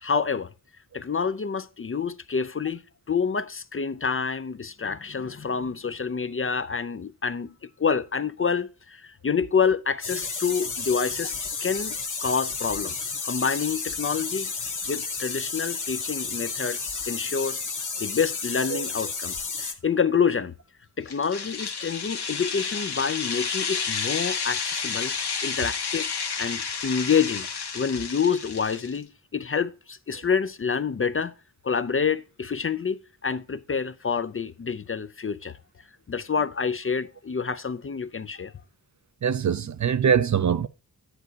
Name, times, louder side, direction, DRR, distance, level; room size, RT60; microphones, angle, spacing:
voice 1, 0.0-0.5 0.9-2.8 3.1-7.5 7.8-12.0 12.2-13.0 13.2-14.5 14.9-17.6 18.0-20.5 21.0-25.1 25.4-26.1 26.4-27.5 27.7-31.3 31.6-35.6 36.1-38.5, left 6 dB, 35° left, 0.4 m, -27 dB
sound 1, 10.0-19.7, left 4 dB, 50° left, 1.3 m, -32 dB
sound 2, 21.1-29.0, left 5 dB, 75° left, 1.1 m, -31 dB
voice 2, 39.2-40.7, right 7 dB, 45° right, 0.5 m, -23 dB
9.9 x 8.1 x 2.8 m
wide cardioid pair, 80°, 40 cm